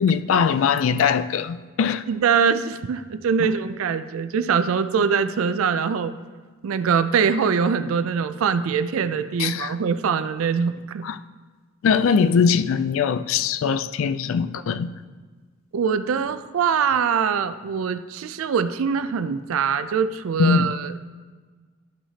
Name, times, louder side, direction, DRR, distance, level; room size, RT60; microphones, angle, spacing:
voice 1, 0.0-2.0 3.4-3.5 9.4-9.7 11.0-11.2 11.8-14.9 20.4-20.7, left 6 dB, 70° left, 12 dB, 0.3 m, -21 dB
voice 2, 2.1-6.1 6.6-11.1 15.7-20.9, right 6 dB, 75° right, 12 dB, 0.4 m, -23 dB
12.5 x 5.6 x 2.8 m, 1.4 s
head